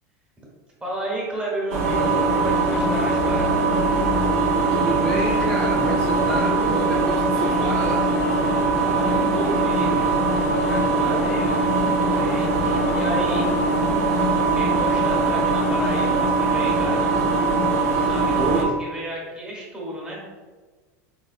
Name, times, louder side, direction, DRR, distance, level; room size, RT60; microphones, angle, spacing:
voice 1, 0.8-3.5 8.8-10.1 10.7-12.7 12.9-13.5 14.5-17.1 17.8-20.2, right 1 dB, 10° right, -5 dB, 1.1 m, -32 dB
sound 1, 1.7-18.6, right 3 dB, 75° right, 0.7 m, -21 dB
voice 2, 4.7-8.1 18.4-18.7, right 1 dB, 5° left, -4 dB, 0.5 m, -28 dB
4.2 x 2.2 x 2.4 m, 1.4 s
supercardioid pair, 110°, 9 cm